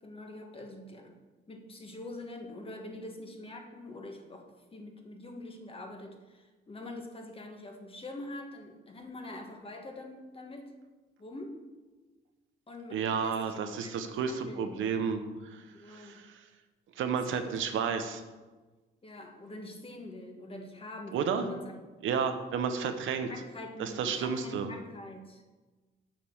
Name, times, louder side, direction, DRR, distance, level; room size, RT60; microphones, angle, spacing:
voice 1, 0.0-1.2 1.5-10.7 11.2-11.6 12.7-13.5 13.8-15.0 15.7-16.2 17.3-17.6 19.0-21.8 23.3-25.5, left 2 dB, 30° left, 3 dB, 1.5 m, -44 dB
voice 2, 12.9-16.4 17.0-18.2 21.1-21.5 22.0-23.3 23.8-24.7, right 6 dB, 80° right, 7 dB, 0.9 m, -32 dB
7.4 x 5.3 x 6.9 m, 1.3 s
cardioid pair, 90°, 20 cm